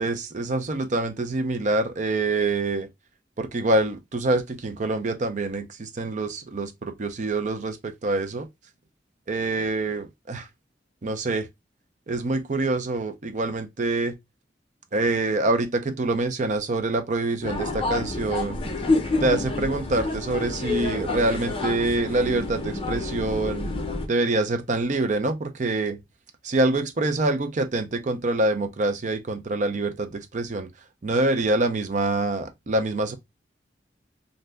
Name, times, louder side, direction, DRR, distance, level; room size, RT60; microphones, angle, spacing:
voice 1, 0.0-2.9 3.4-8.5 9.3-10.5 11.0-11.5 12.1-14.1 14.9-18.6 19.2-23.7 24.1-26.0 26.4-30.7 31.0-33.1, right 2 dB, 45° right, 0.5 m, -25 dB
sound 1, 17.4-24.1, left 3 dB, 30° left, 0.6 m, -28 dB
2.6 x 2.1 x 3.3 m
head